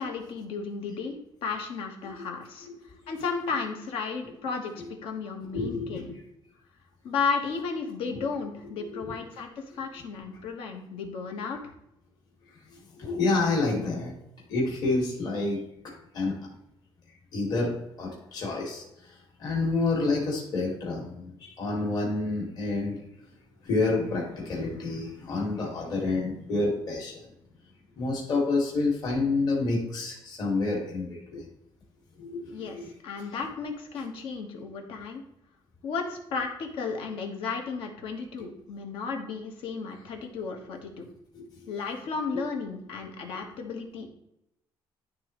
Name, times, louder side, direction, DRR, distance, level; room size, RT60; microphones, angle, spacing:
voice 1, 0.0-6.1 7.0-11.6 32.5-35.2 35.8-41.0 41.7-44.1, left 5 dB, 75° left, 3 dB, 1.4 m, -34 dB
voice 2, 5.5-6.1 8.7-9.0 12.9-14.1 14.5-16.4 17.3-23.0 23.6-27.2 27.9-31.4 32.2-32.9 41.3-41.7 42.3-42.4, left 3 dB, 45° left, -2 dB, 2.0 m, -29 dB
11.5 x 3.8 x 3.1 m, 0.81 s
cardioid pair, 155°, 9 cm